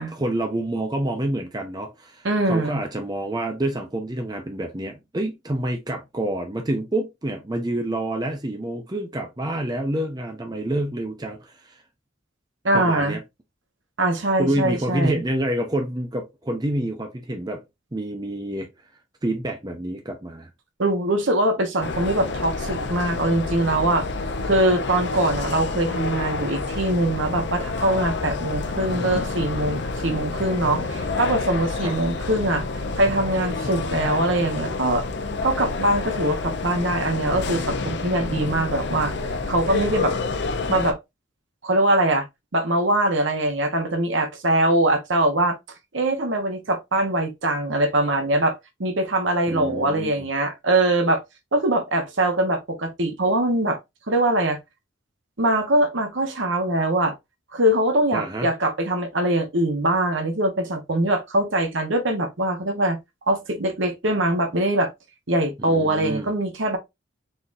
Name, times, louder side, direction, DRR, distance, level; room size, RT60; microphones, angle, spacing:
voice 1, 0.1-11.7 12.7-13.2 14.4-17.6 17.9-18.7 19.2-20.5 31.8-31.9 49.5-50.3 58.1-58.5 65.6-66.3, right 1 dB, 20° right, 0.6 m, -28 dB
voice 2, 2.2-2.8 12.6-13.2 14.0-15.2 20.8-24.1 24.4-32.6 33.0-35.0 35.4-39.1 39.5-40.1 40.7-41.0 41.6-42.3 42.5-45.6 45.9-51.2 51.5-53.8 54.1-54.6 55.4-57.1 57.5-63.0 63.3-64.9 65.3-66.8, right 1 dB, 65° right, 1.0 m, -22 dB
sound 1, 21.8-40.9, left 3 dB, 60° left, 0.6 m, -28 dB
4.1 x 3.7 x 2.5 m
head